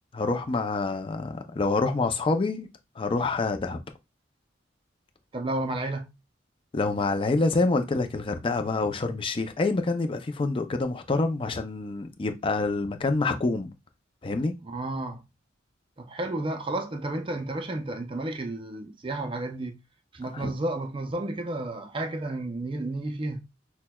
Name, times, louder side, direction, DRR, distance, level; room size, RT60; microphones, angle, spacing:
voice 1, 0.1-2.7 3.0-3.8 6.7-13.7 14.2-14.5 20.3-20.5, left 3 dB, 30° left, 0.4 m, -27 dB
voice 2, 5.3-6.1 14.7-15.2 16.0-19.8 20.1-23.4, right 2 dB, 25° right, 0.5 m, -32 dB
5.9 x 2.1 x 2.2 m
head